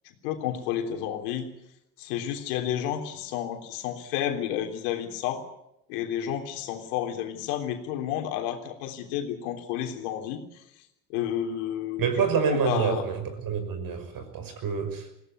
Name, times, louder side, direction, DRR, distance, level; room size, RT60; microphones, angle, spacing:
voice 1, 0.1-1.5 2.0-5.4 5.9-10.6 11.1-13.0, left 10 dB, 65° left, 4 dB, 3.5 m, -31 dB
voice 2, 12.0-15.2, right 6 dB, 45° right, 8 dB, 5.7 m, -27 dB
21.0 x 17.0 x 9.5 m, 0.83 s
hypercardioid pair, 80°, 48 cm